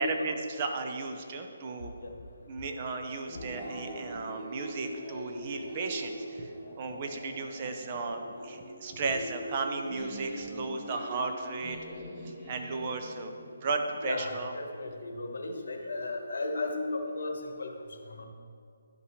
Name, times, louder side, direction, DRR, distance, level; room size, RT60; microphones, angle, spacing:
voice 1, 0.0-1.9 2.5-6.5 6.8-11.8 12.2-13.3 13.6-14.5, right 3 dB, 30° right, 5 dB, 0.7 m, -35 dB
sound 1, 3.3-13.9, equal, 5° right, 1.1 m, -42 dB
voice 2, 14.0-18.3, left 2 dB, 70° left, 3 dB, 1.2 m, -35 dB
12.0 x 5.6 x 3.2 m, 2.4 s
hypercardioid pair, 165°, 0 cm